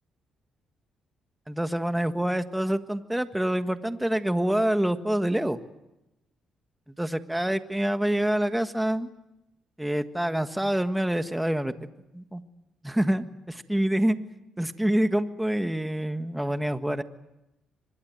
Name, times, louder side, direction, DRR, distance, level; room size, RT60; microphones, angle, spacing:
voice 1, 1.5-5.6 7.0-9.1 9.8-11.7 12.1-12.4 12.8-13.2 13.7-14.2 14.6-17.0, right 1 dB, 5° right, 9 dB, 1.5 m, -26 dB
24.5 x 21.5 x 9.0 m, 0.92 s
cardioid pair, 90°, 0 cm